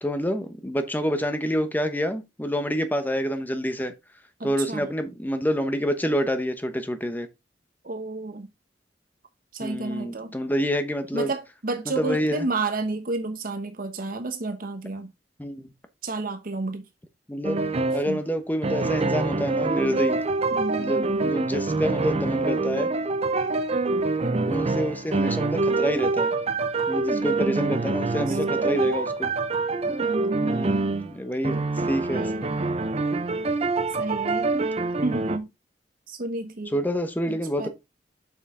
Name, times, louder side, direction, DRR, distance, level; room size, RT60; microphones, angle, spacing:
voice 1, 0.0-3.9 4.4-7.3 9.6-11.3 11.9-12.5 15.4-15.7 17.3-17.6 17.9-20.2 20.8-22.9 24.5-26.3 26.9-29.3 29.9-30.0 30.4-31.6 31.9-32.5 36.7-37.7, equal, 10° left, 1.0 m, -27 dB
voice 2, 4.4-4.9 7.8-8.5 9.5-10.3 11.1-15.1 16.0-16.9 18.1-18.2 20.5-21.2 24.2-24.6 27.1-28.9 30.0-30.9 31.4-32.6 34.0-34.7 35.0-35.5 36.1-36.7 37.3-37.7, right 3 dB, 55° right, 1.0 m, -31 dB
sound 1, 17.4-18.1 18.6-31.1 31.4-35.4, right 3 dB, 35° right, 0.7 m, -26 dB
6.9 x 5.5 x 3.7 m
head